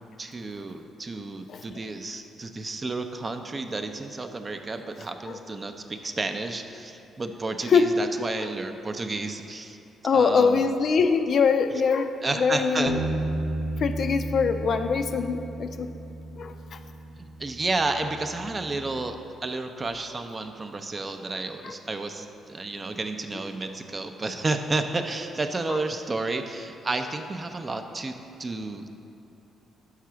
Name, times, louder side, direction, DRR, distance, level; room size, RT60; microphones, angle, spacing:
voice 1, 0.2-9.8 10.1-10.6 12.2-12.9 17.2-28.9, right 3 dB, 30° right, 7 dB, 0.4 m, -31 dB
voice 2, 10.0-13.0 13.8-15.9 16.4-16.8 21.6-21.7 25.7-25.8, left 5 dB, 55° left, 7 dB, 0.4 m, -23 dB
Bass guitar, 12.9-19.1, right 2 dB, 90° right, 0.4 m, -34 dB
5.6 x 4.7 x 6.1 m, 2.9 s
cardioid pair, 90°, 0 cm